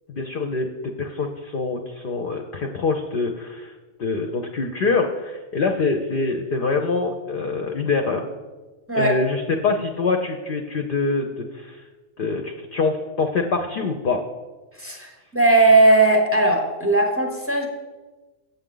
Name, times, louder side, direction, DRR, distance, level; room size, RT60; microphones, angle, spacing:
voice 1, 0.1-0.7 1.0-3.7 4.0-8.2 8.9-11.8 12.2-14.2, left 4 dB, 55° left, 4 dB, 0.6 m, -24 dB
voice 2, 14.8-17.7, right 2 dB, 15° right, 2 dB, 0.7 m, -18 dB
8.1 x 7.2 x 3.8 m, 1.3 s
omnidirectional pair, 1.4 m